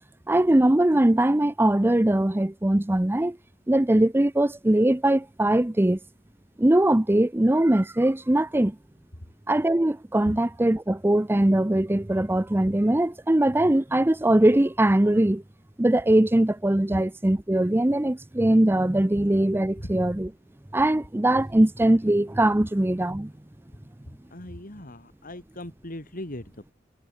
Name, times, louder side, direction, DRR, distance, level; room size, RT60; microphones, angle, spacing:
voice 1, 0.3-3.4 3.7-6.0 6.6-8.8 9.5-15.4 15.8-20.3 20.7-23.3, right 1 dB, 10° right, 0.6 m, -21 dB
voice 2, 24.3-26.7, left 1 dB, 45° left, 3.2 m, -40 dB
head